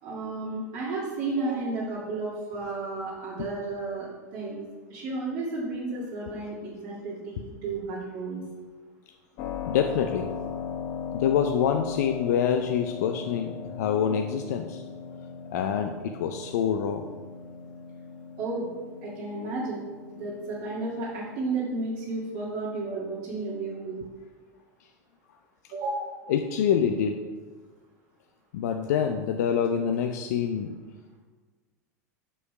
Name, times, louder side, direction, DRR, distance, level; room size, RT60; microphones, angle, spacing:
voice 1, 0.0-4.1 4.3-4.6 4.9-8.4 18.4-18.7 19.0-19.9 20.1-24.0 25.7-26.2, right 3 dB, 55° right, -7 dB, 2.0 m, -32 dB
Keyboard (musical), 9.4-21.9, left 6 dB, 50° left, 1.0 m, -38 dB
voice 2, 9.7-10.3 11.1-13.5 13.8-14.8 15.5-17.2 26.3-27.2 28.5-30.8, left 8 dB, 70° left, 5 dB, 0.5 m, -26 dB
6.3 x 5.6 x 4.8 m, 1.4 s
hypercardioid pair, 90°, 9 cm